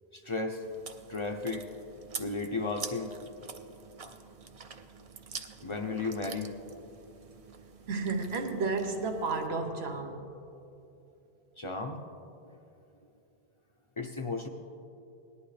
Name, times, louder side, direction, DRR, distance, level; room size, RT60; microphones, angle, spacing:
voice 1, 0.1-0.6 1.1-1.7 2.2-3.1 4.0-4.2 5.6-6.5 11.6-12.0 14.0-14.5, left 3 dB, 35° left, 3 dB, 0.6 m, -34 dB
Chewing mastication, 0.6-9.5, right 5 dB, 45° right, 0.6 m, -46 dB
voice 2, 7.9-10.3, right 3 dB, 90° right, 4 dB, 1.3 m, -32 dB
18.0 x 11.0 x 3.3 m, 2.8 s
omnidirectional pair, 1.0 m